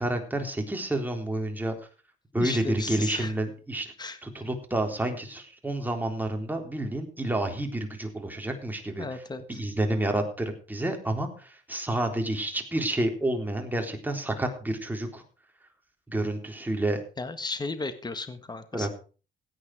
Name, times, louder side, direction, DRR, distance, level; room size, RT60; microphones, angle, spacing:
voice 1, 0.0-1.8 2.3-3.9 4.2-9.1 9.5-15.2 16.1-17.0 18.7-18.9, right 1 dB, 10° right, 3 dB, 3.7 m, -29 dB
voice 2, 2.4-3.3 4.0-4.2 9.0-9.6 17.2-18.9, left 3 dB, 20° left, 10 dB, 1.6 m, -35 dB
16.5 x 9.2 x 4.9 m, 0.36 s
cardioid pair, 90°, 20 cm